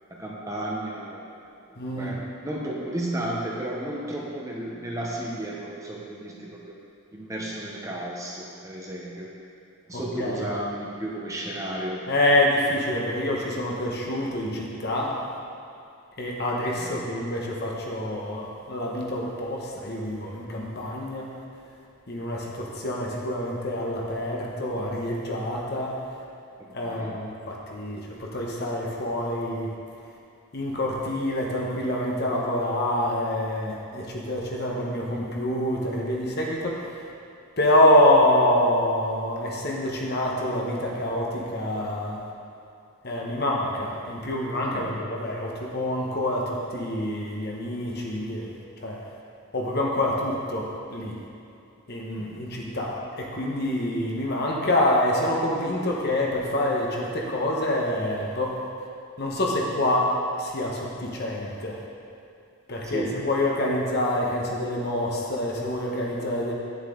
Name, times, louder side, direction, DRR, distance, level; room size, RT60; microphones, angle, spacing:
voice 1, 0.1-1.3 1.7-2.2 2.4-6.8 7.1-9.3 9.9-12.0 16.8-16.9 26.6-27.2 44.7-45.0 52.2-52.4 62.8-63.2, right 1 dB, 15° right, -3 dB, 0.8 m, -33 dB
voice 2, 1.8-2.2 9.9-10.4 12.1-15.2 16.2-21.3 22.1-26.0 26.7-29.7 30.5-37.0 37.6-42.2 43.0-49.0 49.5-51.2 51.9-58.6 59.2-61.8 62.7-66.5, left 1 dB, 45° left, -2 dB, 1.1 m, -26 dB
9.0 x 7.3 x 3.7 m, 2.6 s
head